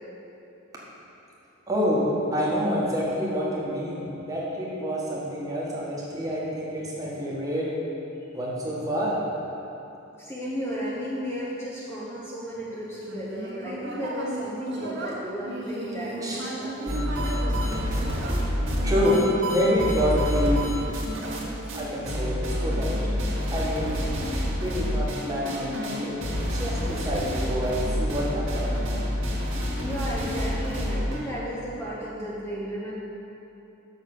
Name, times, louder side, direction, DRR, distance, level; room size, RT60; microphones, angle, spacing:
voice 1, 1.7-7.7 8.3-9.2 16.2-16.4 18.4-20.7 21.7-23.2 23.5-24.0 24.6-28.8, equal, 15° right, -5 dB, 1.5 m, -27 dB
voice 2, 10.2-17.0 26.6-27.0 29.7-32.9, equal, 15° left, -7 dB, 0.9 m, -34 dB
Human voice, 13.0-20.4 21.0-22.4, right 2 dB, 60° right, 1.1 m, -36 dB
sound 1, 16.9-21.4 21.7-21.8 22.1-31.3, equal, 80° right, 1.7 m, -28 dB
6.6 x 6.3 x 6.5 m, 3.0 s
head